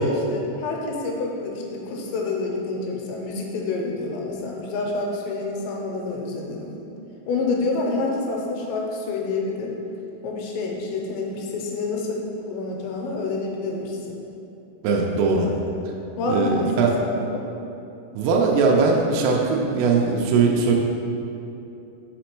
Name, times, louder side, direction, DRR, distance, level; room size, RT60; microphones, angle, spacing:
voice 1, 0.0-6.7 7.3-9.7 10.2-14.2 15.4-15.6 16.2-17.4 19.1-19.2, left 3 dB, 90° left, 0 dB, 3.0 m, -28 dB
voice 2, 14.8-15.5 16.2-17.0 18.2-20.7, right 4 dB, 85° right, 0 dB, 2.3 m, -20 dB
5.1 x 5.0 x 4.5 m, 2.8 s
omnidirectional pair, 5.1 m